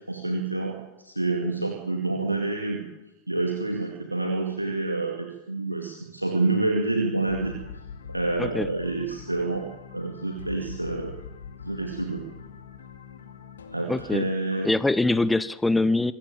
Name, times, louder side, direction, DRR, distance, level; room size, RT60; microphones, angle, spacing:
voice 1, 0.1-0.8 1.0-2.8 3.3-7.5 8.1-9.7 9.9-11.1 11.6-12.2 13.7-14.7, right 2 dB, 85° right, 2 dB, 2.3 m, -28 dB
sound 1, 7.3-14.1, left 6 dB, 70° left, 2.5 m, -43 dB
voice 2, 13.9-14.3 14.6-16.1, left 2 dB, 5° left, 17 dB, 0.8 m, -23 dB
25.0 x 14.5 x 8.8 m, 0.98 s
figure-of-eight pair, 90°, 0 cm